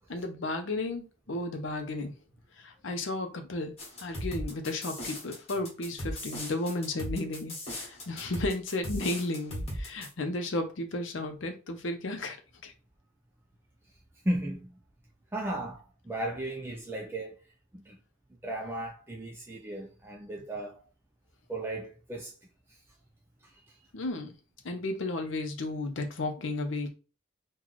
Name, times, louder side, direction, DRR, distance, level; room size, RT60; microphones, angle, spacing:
voice 1, 0.1-2.1 2.5-12.4 12.6-12.7 23.9-24.3 24.6-26.9, left 2 dB, 70° left, 0.6 m, -33 dB
sound 1, 3.8-10.1, equal, 30° left, 1.1 m, -37 dB
voice 2, 14.2-14.8 15.3-17.4 17.7-18.0 18.4-20.8 21.5-22.4 22.7-22.8 23.4-23.8, right 1 dB, 10° right, 0.3 m, -35 dB
3.0 x 2.3 x 3.9 m
head